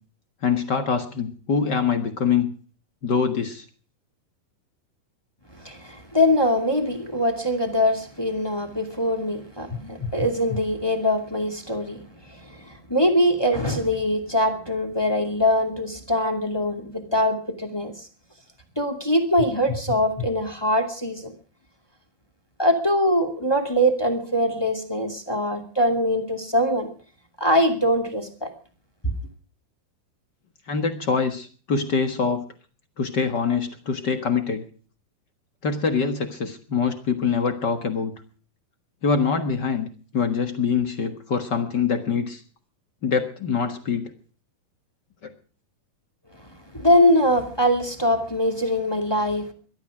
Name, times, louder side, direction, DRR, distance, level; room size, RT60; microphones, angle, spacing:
voice 1, 0.4-2.5 3.0-3.6 30.7-32.4 33.0-34.6 35.6-38.1 39.0-39.9 40.1-42.4 43.0-44.1 45.2-45.3, left 5 dB, 70° left, 1.0 m, -24 dB
voice 2, 5.5-18.1 18.7-21.3 22.6-26.9 27.4-28.5 29.0-29.1 46.5-49.5, left 1 dB, 10° left, 1.7 m, -23 dB
22.0 x 12.5 x 5.0 m
omnidirectional pair, 4.5 m